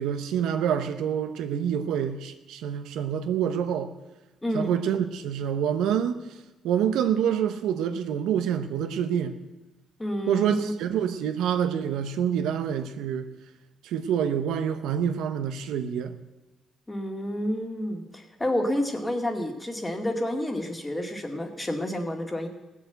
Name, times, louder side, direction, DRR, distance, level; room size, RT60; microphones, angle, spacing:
voice 1, 0.0-3.9 4.5-6.2 6.6-9.4 10.3-13.3 13.8-16.1, right 8 dB, 90° right, 0.9 m, -27 dB
voice 2, 4.4-4.7 10.0-10.7 16.9-22.5, left 1 dB, 15° left, 2.1 m, -29 dB
17.0 x 7.5 x 7.9 m
cardioid pair, 90°, 0 cm